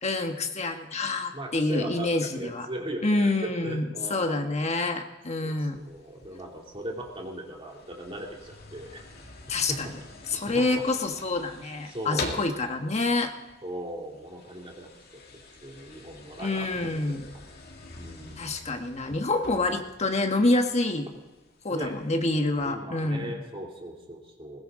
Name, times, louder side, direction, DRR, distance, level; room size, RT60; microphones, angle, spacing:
voice 1, 0.0-2.7 3.0-5.8 9.5-9.9 10.3-13.3 16.4-17.3 18.4-21.1 21.6-23.4, left 2 dB, 35° left, 5 dB, 1.3 m, -27 dB
voice 2, 1.3-4.5 5.4-9.0 9.5-9.9 10.3-10.8 11.9-12.4 13.6-14.9 15.6-17.3 17.9-18.6 21.7-21.9 22.6-24.6, right 1 dB, 30° right, 0 dB, 2.8 m, -38 dB
sound 1, 5.7-22.7, left 3 dB, 55° left, 2.3 m, -45 dB
21.0 x 16.0 x 3.8 m, 1.2 s
head